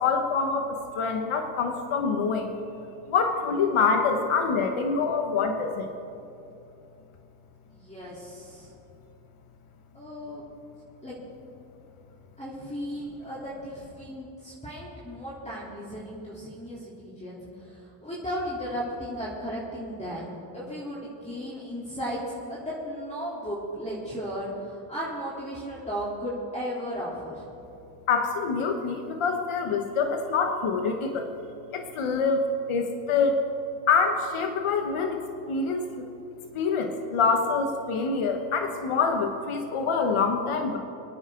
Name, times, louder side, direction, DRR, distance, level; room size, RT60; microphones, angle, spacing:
voice 1, 0.0-2.6 3.1-5.9 28.1-31.3 31.7-33.4 33.9-36.1 36.5-40.8, left 5 dB, 80° left, 5 dB, 1.2 m, -26 dB
voice 2, 7.7-8.7 9.9-10.4 11.0-11.2 12.4-27.5, equal, 15° left, -8 dB, 3.3 m, -35 dB
26.0 x 9.5 x 3.8 m, 2.7 s
cardioid pair, 85°, 49 cm